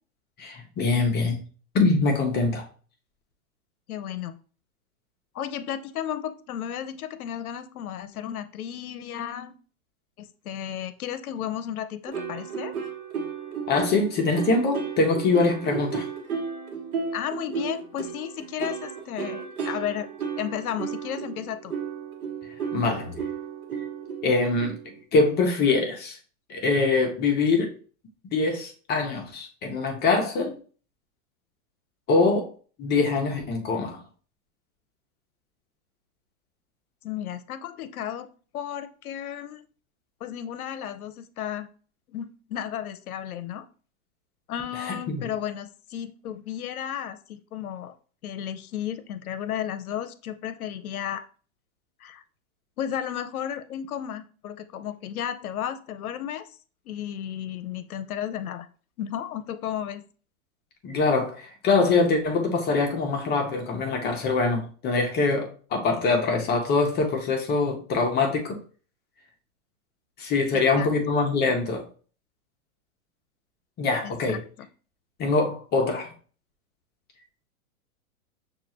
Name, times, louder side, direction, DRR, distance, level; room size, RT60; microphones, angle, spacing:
voice 1, 0.4-1.4 1.7-2.6 13.7-16.1 22.7-23.1 24.2-24.8 25.1-26.2 26.5-27.7 28.3-30.5 32.1-32.5 32.8-34.0 44.8-45.3 60.8-68.6 70.2-71.8 73.8-74.4 75.2-76.1, left 3 dB, 25° left, 0.7 m, -24 dB
voice 2, 3.9-4.4 5.3-9.5 10.2-12.7 17.1-20.1 20.4-21.7 37.0-38.3 38.5-39.6 40.2-41.7 42.1-43.7 44.5-47.9 48.2-51.2 52.0-52.2 52.8-56.6 56.9-58.7 59.0-60.0 70.5-70.9 74.0-74.7, left 10 dB, 80° left, 0.6 m, -33 dB
sound 1, 12.1-25.0, right 6 dB, 90° right, 1.1 m, -34 dB
6.3 x 2.4 x 2.9 m
hypercardioid pair, 115°, 43 cm